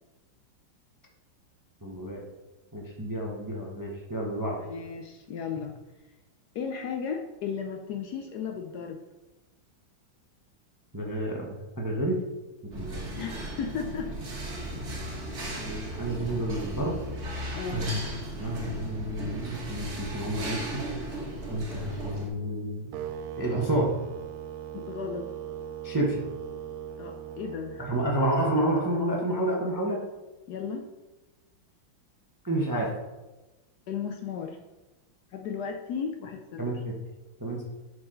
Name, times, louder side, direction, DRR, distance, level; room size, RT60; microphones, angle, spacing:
voice 1, 1.8-2.3 2.7-4.6 10.9-12.2 12.6-13.2 14.8-14.9 15.4-17.3 17.7-18.0 18.4-21.1 21.5-22.9 23.4-23.9 25.8-26.1 27.8-30.0 32.4-32.9 36.6-36.9 37.4-37.6, right 1 dB, 15° right, -1 dB, 0.6 m, -30 dB
voice 2, 4.6-5.7 6.5-9.0 13.2-14.1 17.5-17.9 24.7-25.3 27.0-27.8 30.5-30.8 33.9-34.6 35.3-36.8, left 6 dB, 70° left, 4 dB, 1.0 m, -35 dB
sound 1, 12.7-22.3, right 1 dB, 40° right, 1.5 m, -36 dB
sound 2, 22.9-29.0, right 9 dB, 90° right, 0.7 m, -39 dB
10.5 x 4.8 x 3.8 m, 1.1 s
omnidirectional pair, 2.1 m